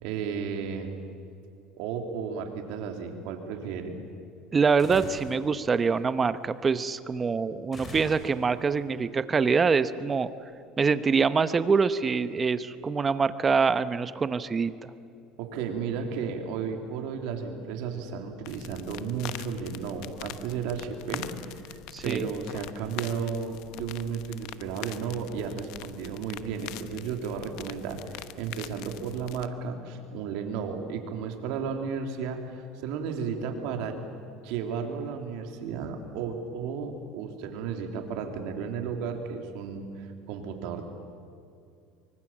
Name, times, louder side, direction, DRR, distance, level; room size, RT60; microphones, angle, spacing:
voice 1, 0.0-0.9 1.8-4.0 15.4-21.3 21.7-34.0 34.4-40.8, right 6 dB, 70° right, 4 dB, 3.3 m, -33 dB
voice 2, 4.5-10.3 10.8-14.9 21.9-22.2, right 5 dB, 25° right, 13 dB, 0.9 m, -25 dB
sound 1, 4.8-5.4 7.7-8.7, left 2 dB, 25° left, 6.1 m, -41 dB
sound 2, 18.5-29.5, left 14 dB, 70° left, 1.0 m, -43 dB
24.5 x 24.5 x 7.5 m, 2.5 s
supercardioid pair, 115°, 0 cm